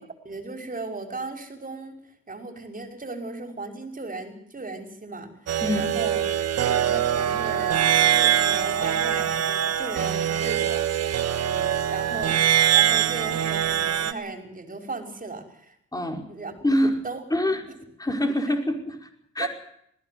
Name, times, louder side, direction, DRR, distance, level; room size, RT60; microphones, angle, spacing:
voice 1, 0.0-1.9 2.3-6.3 6.6-12.4 12.7-15.8 16.3-16.7 17.0-17.2 19.4-19.5, right 3 dB, 25° right, 5 dB, 5.7 m, -36 dB
sound 1, 5.5-14.1, right 10 dB, 55° right, 1.6 m, -23 dB
voice 2, 5.6-5.9 15.9-16.2 16.6-17.0 17.3-17.6 18.0-19.1 19.4-19.5, left 1 dB, 10° left, 4 dB, 5.2 m, -25 dB
20.5 x 16.0 x 9.5 m, 0.69 s
cardioid pair, 90°, 30 cm